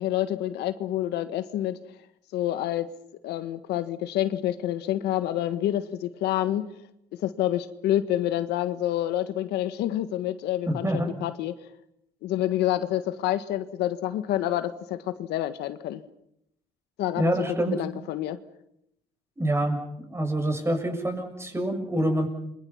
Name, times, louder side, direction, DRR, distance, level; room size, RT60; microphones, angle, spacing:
voice 1, 0.0-1.8 2.3-2.9 3.2-6.6 7.1-11.5 12.2-16.0 17.0-17.3 17.7-18.4, left 13 dB, 80° left, 10 dB, 1.6 m, -28 dB
voice 2, 10.7-11.1 17.2-17.8 19.4-19.8 20.1-22.3, right 1 dB, 15° right, 5 dB, 7.1 m, -26 dB
30.0 x 24.5 x 5.7 m, 0.78 s
cardioid pair, 110°, 17 cm